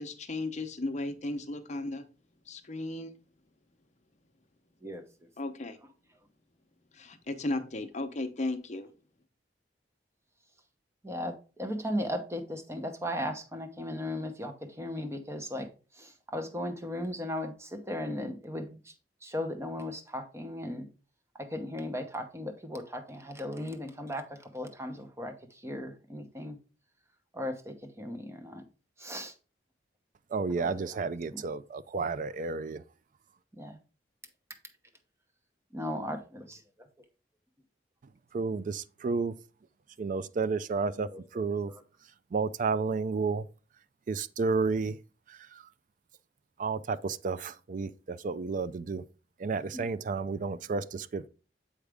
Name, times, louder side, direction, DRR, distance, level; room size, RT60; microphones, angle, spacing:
voice 1, 0.0-2.1 2.5-3.2 5.4-5.8 6.9-8.9, left 2 dB, 40° left, 0.7 m, -35 dB
voice 2, 11.0-15.7 16.0-18.9 19.2-20.9 21.3-26.6 27.3-28.6 29.0-29.3 30.6-31.0 31.3-31.5 33.6-33.8 35.7-36.9 41.0-41.8 49.7-49.9, left 1 dB, 15° right, 0.9 m, -37 dB
voice 3, 30.3-32.8 38.3-39.3 40.0-41.7 42.3-43.4 44.1-45.0 46.6-49.0 49.4-51.3, right 4 dB, 45° right, 0.4 m, -31 dB
7.3 x 4.9 x 3.4 m
head